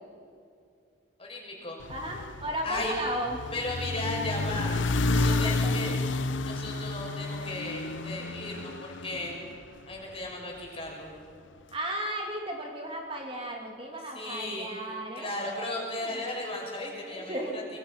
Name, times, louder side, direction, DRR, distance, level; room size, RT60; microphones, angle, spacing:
voice 1, 1.2-1.8 2.6-2.9 3.5-4.8 5.1-5.9 6.5-9.4 9.9-11.1 14.1-14.7 15.2-17.6, left 2 dB, 30° left, -1 dB, 6.1 m, -35 dB
sound 1, 1.8-10.2, left 3 dB, 70° left, 0.8 m, -31 dB
voice 2, 1.9-3.4 5.1-5.7 11.7-16.2 17.1-17.6, right 1 dB, 25° right, 0 dB, 2.5 m, -35 dB
26.0 x 23.5 x 5.9 m, 2.4 s
head